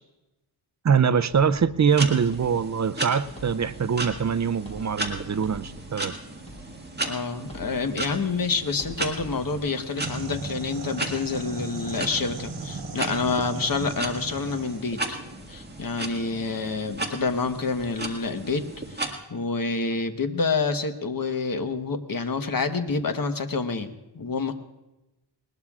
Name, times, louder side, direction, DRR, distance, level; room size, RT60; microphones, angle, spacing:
voice 1, 0.8-6.1, right 6 dB, 40° right, 13 dB, 0.5 m, -23 dB
sound 1, 1.3-9.6, equal, 15° left, 4.6 m, -46 dB
sound 2, 1.9-19.1, right 2 dB, 20° right, 1.9 m, -36 dB
voice 2, 7.0-15.2 15.5-18.6 18.9-24.5, left 4 dB, 45° left, 7 dB, 1.1 m, -28 dB
sound 3, 10.0-14.8, right 3 dB, 85° right, 1.3 m, -36 dB
20.0 x 19.5 x 2.4 m, 0.99 s
wide cardioid pair, 105°, 46 cm